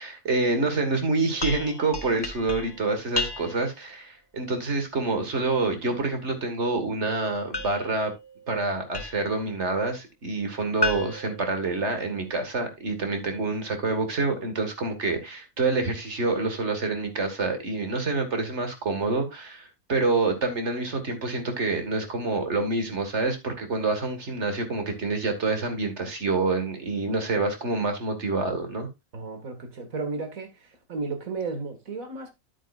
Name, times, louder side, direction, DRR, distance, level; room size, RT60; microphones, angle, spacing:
voice 1, 0.0-8.1 8.5-28.9, right 3 dB, 55° right, 2.1 m, -27 dB
sound 1, 1.4-3.8 7.5-9.4 10.8-12.3, left 3 dB, 20° left, 0.8 m, -34 dB
voice 2, 29.1-30.5 30.9-32.3, right 3 dB, 80° right, 2.3 m, -33 dB
10.5 x 8.7 x 2.5 m
omnidirectional pair, 1.4 m